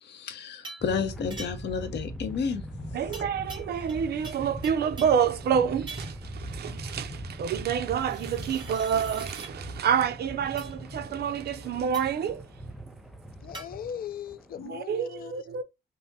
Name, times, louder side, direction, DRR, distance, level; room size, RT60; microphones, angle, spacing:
voice 1, 0.0-2.6, left 6 dB, 80° left, 0.8 m, -31 dB
sound 1, 0.6-0.9 1.3-1.8 3.1-4.0 4.2-5.3 5.9-6.3 8.0-9.5 10.6-10.8 11.9-12.2 13.5-13.7, right 3 dB, 25° right, 1.7 m, -44 dB
sound 2, 0.8-14.8, right 1 dB, ahead, 0.5 m, -41 dB
voice 2, 2.9-12.5 14.6-15.6, right 8 dB, 65° right, 0.5 m, -28 dB
voice 3, 13.4-15.5, left 9 dB, 55° left, 0.4 m, -39 dB
5.3 x 2.0 x 2.8 m
wide cardioid pair, 135°, 18 cm